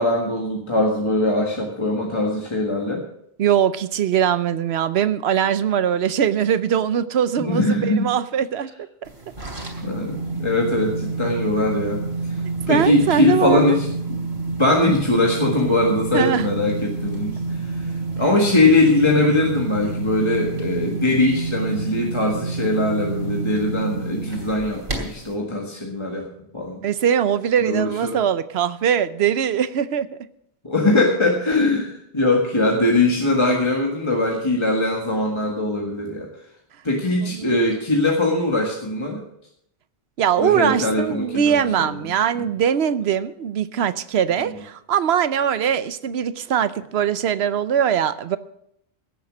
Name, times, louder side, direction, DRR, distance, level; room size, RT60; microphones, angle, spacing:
voice 1, 0.0-3.0 7.4-8.1 9.8-12.0 12.7-14.3 14.6-17.3 17.7-17.9 18.2-26.3 26.5-26.8 27.6-28.2 30.6-36.3 36.8-39.2 40.4-41.7, left 2 dB, 25° left, -1 dB, 1.7 m, -21 dB
voice 2, 3.4-9.1 12.7-13.8 16.1-16.5 26.8-30.2 37.2-37.7 40.2-48.4, right 9 dB, 75° right, 14 dB, 1.0 m, -21 dB
sound 1, 9.1-25.3, right 3 dB, 50° right, 3.1 m, -28 dB
17.0 x 7.3 x 6.2 m, 0.73 s
omnidirectional pair, 1.1 m